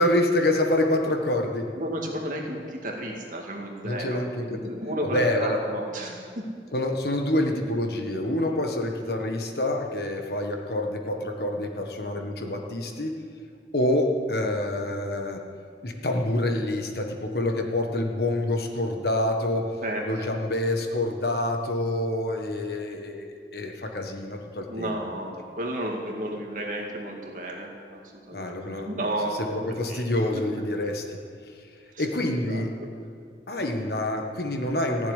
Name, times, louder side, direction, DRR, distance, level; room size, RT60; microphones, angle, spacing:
voice 1, 0.0-1.7 3.8-4.7 5.1-5.6 6.7-13.2 13.7-15.4 15.8-19.7 20.0-25.0 28.3-28.9 29.5-31.7 32.0-32.8 33.5-35.1, left 1 dB, 65° left, 3 dB, 1.6 m, -27 dB
voice 2, 1.8-4.2 4.5-6.4 19.8-20.3 24.7-28.0 28.3-29.5 29.9-30.0 30.3-30.4 31.9-32.1 32.3-32.6, right 1 dB, 45° right, 0 dB, 2.1 m, -32 dB
15.5 x 7.4 x 10.0 m, 2.2 s
head